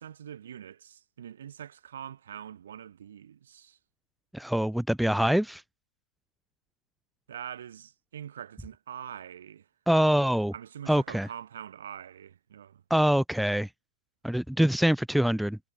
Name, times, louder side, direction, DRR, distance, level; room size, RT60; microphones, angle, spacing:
voice 1, 0.0-3.8 7.3-9.7 10.5-12.8, right 9 dB, 65° right, 6.4 m, -44 dB
voice 2, 4.3-5.6 9.9-10.5 10.9-11.3 12.9-13.7 14.2-15.6, equal, ahead, 1.2 m, -24 dB
figure-of-eight pair, 105°, 0 cm